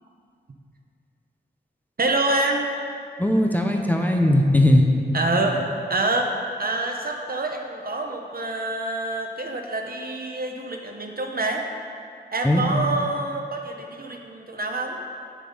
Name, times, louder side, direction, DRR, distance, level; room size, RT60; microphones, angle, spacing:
voice 1, 2.0-2.7 5.1-6.3 6.6-11.6 12.3-15.0, right 2 dB, 55° right, 2 dB, 1.0 m, -26 dB
voice 2, 3.2-4.9 12.4-12.9, left 1 dB, 10° left, 2 dB, 0.8 m, -19 dB
8.5 x 7.4 x 5.5 m, 2.3 s
wide cardioid pair, 95°, 18 cm